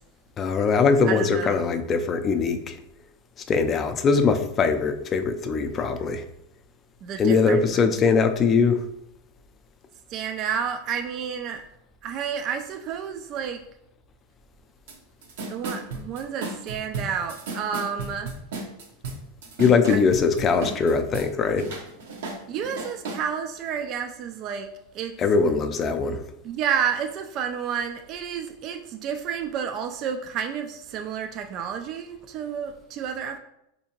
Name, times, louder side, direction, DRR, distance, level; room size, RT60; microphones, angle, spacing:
voice 1, 0.4-2.8 3.5-6.2 7.2-8.8 19.6-21.7 25.2-26.2, left 5 dB, 30° left, 8 dB, 0.4 m, -21 dB
voice 2, 1.0-1.6 7.0-7.9 10.1-11.6 12.0-13.6 15.5-18.3 19.9-20.0 22.5-24.7 24.9-25.2 26.4-33.4, right 7 dB, 45° right, 5 dB, 0.3 m, -30 dB
sound 1, 14.9-15.0 15.2-21.3 21.6-23.2, right 3 dB, 75° right, 0.7 m, -34 dB
4.2 x 2.7 x 2.8 m, 0.80 s
supercardioid pair, 125°, 0 cm